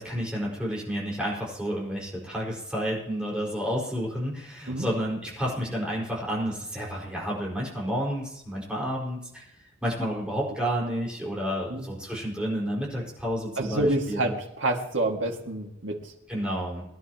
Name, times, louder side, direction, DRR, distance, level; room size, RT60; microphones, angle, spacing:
voice 1, 0.0-14.3 16.3-16.8, equal, 5° right, -5 dB, 5.0 m, -30 dB
voice 2, 13.6-16.1, right 2 dB, 80° right, 1 dB, 2.1 m, -28 dB
22.0 x 11.0 x 3.0 m, 0.81 s
head